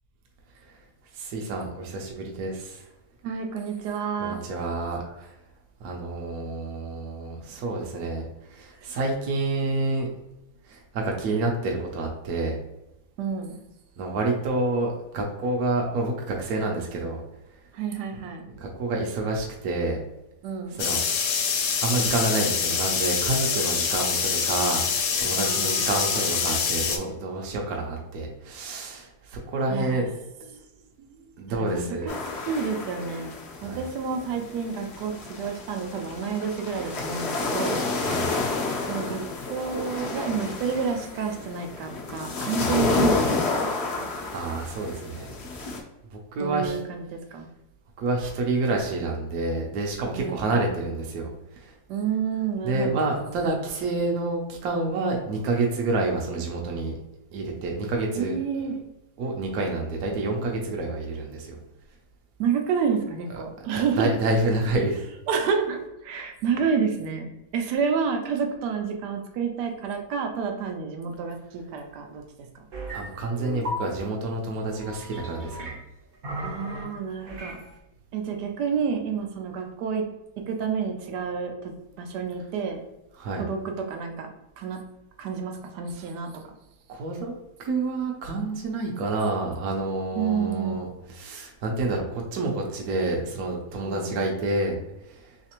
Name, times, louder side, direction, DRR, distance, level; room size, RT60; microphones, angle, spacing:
voice 1, 1.1-2.8 4.2-5.3 5.8-8.2 8.5-10.1 10.7-12.6 14.0-17.2 18.6-20.0 20.7-21.0 21.8-30.1 31.4-32.1 33.6-33.8 37.9-38.3 44.3-45.3 46.3-46.8 48.0-51.3 51.6-51.7 52.6-57.0 57.3-58.4 59.2-61.6 63.7-65.0 72.9-75.7 83.2-83.4 86.9-87.3 87.6-90.9 91.1-94.8 95.1-95.2, right 2 dB, 70° right, 0 dB, 1.1 m, -28 dB
voice 2, 3.2-4.4 13.2-13.6 17.7-18.5 20.4-20.8 25.4-26.3 29.7-30.0 30.5-30.6 31.0-31.2 31.5-32.2 32.4-33.3 33.6-37.9 38.9-39.2 39.5-43.7 44.0-44.1 46.4-47.5 50.2-50.6 51.9-53.1 58.1-58.8 62.4-64.1 65.3-72.2 72.5-72.6 76.4-77.6 78.1-80.1 80.5-82.8 83.3-84.3 84.6-84.8 85.2-86.5 90.1-90.7 93.9-94.2, right 6 dB, 90° right, 4 dB, 1.2 m, -29 dB
sound 1, 20.8-27.0, left 6 dB, 85° left, 1.2 m, -25 dB
sound 2, 32.1-45.8, left 3 dB, 60° left, 0.7 m, -30 dB
sound 3, 72.7-73.0 73.4-73.8 74.8-75.8 76.2-76.8 77.3-77.6, equal, 50° right, 0.6 m, -35 dB
3.2 x 3.2 x 2.9 m, 0.93 s
omnidirectional pair, 1.7 m